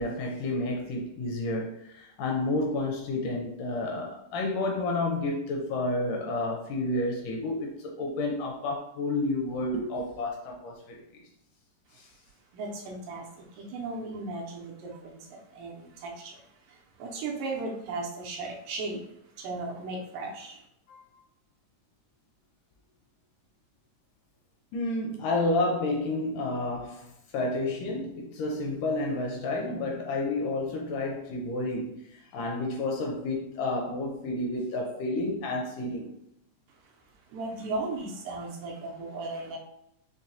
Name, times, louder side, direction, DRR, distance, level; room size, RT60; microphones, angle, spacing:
voice 1, 0.0-11.0 12.0-12.1 20.9-21.1 24.7-27.1 27.3-32.0 32.3-36.1, left 2 dB, 80° left, 1.9 m, -30 dB
voice 2, 12.5-20.6 36.7-37.0 37.3-39.6, right 2 dB, 80° right, 2.3 m, -37 dB
6.0 x 2.2 x 2.7 m
omnidirectional pair, 4.1 m